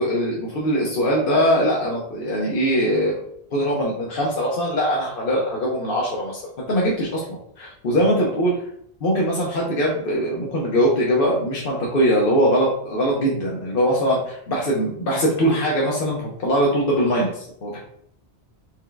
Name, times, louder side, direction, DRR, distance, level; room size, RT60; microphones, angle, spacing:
voice 1, 0.0-3.2 3.5-8.5 9.0-17.8, equal, 55° left, -4 dB, 1.0 m, -21 dB
4.6 x 3.6 x 2.2 m, 0.67 s
omnidirectional pair, 1.1 m